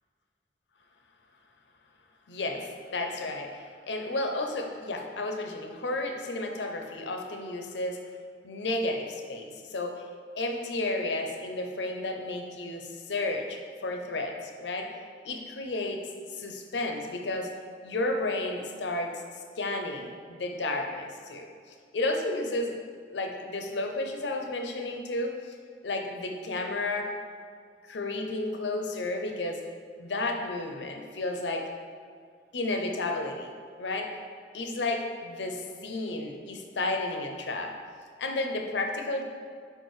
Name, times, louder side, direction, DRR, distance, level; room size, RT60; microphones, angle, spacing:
voice 1, 2.3-8.0 8.4-10.1 10.3-14.9 15.2-16.0 16.3-17.5 17.8-19.2 19.6-22.7 23.1-25.6 25.8-27.1 27.9-29.6 30.0-31.7 32.5-33.5 33.8-34.1 34.5-37.7 38.2-39.2, left 2 dB, 85° left, 3 dB, 0.7 m, -32 dB
4.8 x 4.6 x 4.8 m, 2.1 s
head